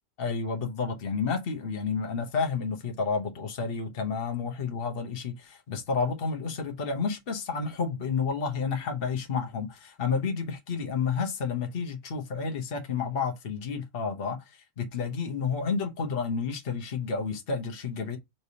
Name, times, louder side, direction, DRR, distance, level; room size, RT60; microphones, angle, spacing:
voice 1, 0.2-18.2, left 5 dB, 50° left, 1.1 m, -30 dB
4.3 x 3.3 x 2.7 m
omnidirectional pair, 1.3 m